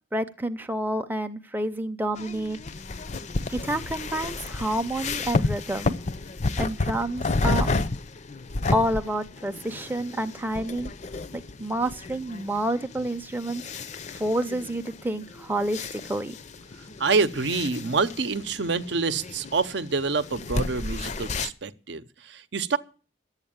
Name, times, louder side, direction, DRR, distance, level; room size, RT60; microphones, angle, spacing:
voice 1, 0.1-2.6 3.5-5.9 6.6-7.7 8.7-10.9 11.6-13.6 14.1-16.4, right 1 dB, 10° right, 0.6 m, -29 dB
sound 1, 2.2-21.5, left 3 dB, 40° left, 0.6 m, -32 dB
voice 2, 17.0-22.8, right 4 dB, 65° right, 0.7 m, -27 dB
11.5 x 8.2 x 8.7 m
head